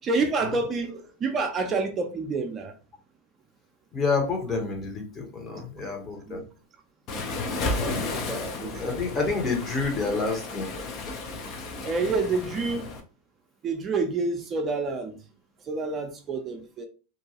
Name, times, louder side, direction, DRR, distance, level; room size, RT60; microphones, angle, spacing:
voice 1, 0.0-2.7 6.3-6.4 7.8-9.0 11.8-12.9 13.6-15.2 15.6-16.9, right 3 dB, 30° right, 0.5 m, -28 dB
voice 2, 3.9-6.4 8.3-10.7, left 4 dB, 30° left, 1.0 m, -29 dB
Waves surf, 7.1-13.0, left 3 dB, 45° left, 0.6 m, -33 dB
2.6 x 2.2 x 2.8 m
hypercardioid pair, 100°, 0 cm